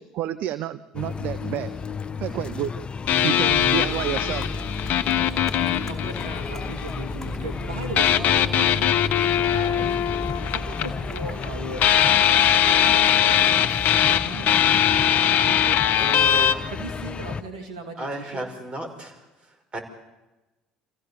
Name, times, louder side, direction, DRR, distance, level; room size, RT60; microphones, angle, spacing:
voice 1, 0.0-1.7 2.2-2.7 3.2-4.5, right 12 dB, 60° right, 14 dB, 0.8 m, -29 dB
sound 1, 0.9-17.4, left 5 dB, 30° left, 0.9 m, -33 dB
sound 2, 3.1-6.9 8.0-11.5 11.8-16.5, left 10 dB, 60° left, 1.1 m, -21 dB
voice 2, 3.2-4.0 5.5-10.0 10.4-16.1 16.7-18.5, right 2 dB, 85° right, 4 dB, 2.8 m, -39 dB
sound 3, 3.5-12.0, equal, 10° left, 2.8 m, -38 dB
voice 3, 16.0-16.6 18.0-19.1 19.7-19.8, right 2 dB, 30° right, 5 dB, 5.4 m, -33 dB
27.5 x 15.5 x 7.0 m, 1.1 s
hypercardioid pair, 65°, 3 cm